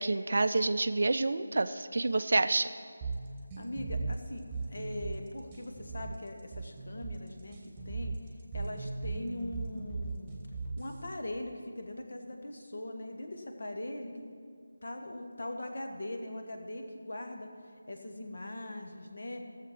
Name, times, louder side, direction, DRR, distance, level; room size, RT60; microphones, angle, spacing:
voice 1, 0.0-2.7, right 2 dB, 50° right, 11 dB, 0.5 m, -28 dB
sound 1, 3.0-11.0, right 3 dB, 10° right, 1.6 m, -38 dB
voice 2, 3.6-7.6 7.8-8.1 8.5-10.3 10.8-14.1 14.8-17.5 17.9-19.4, left 1 dB, 50° left, 4 dB, 1.5 m, -41 dB
16.5 x 7.3 x 6.1 m, 2.2 s
figure-of-eight pair, 160°, 0 cm